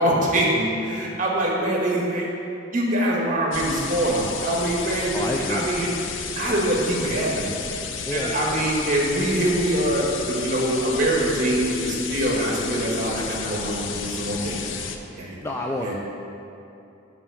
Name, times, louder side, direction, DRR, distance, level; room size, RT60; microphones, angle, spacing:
voice 1, 0.0-2.3 2.7-5.9 6.2-7.5 8.0-15.3 15.8-15.9, right 1 dB, 45° right, -2 dB, 1.4 m, -24 dB
sound 1, 3.5-15.0, left 6 dB, 80° left, 0.5 m, -32 dB
voice 2, 5.1-5.7 8.1-8.3 15.4-15.9, left 1 dB, 15° left, 0 dB, 0.3 m, -28 dB
6.1 x 5.4 x 6.3 m, 2.8 s
head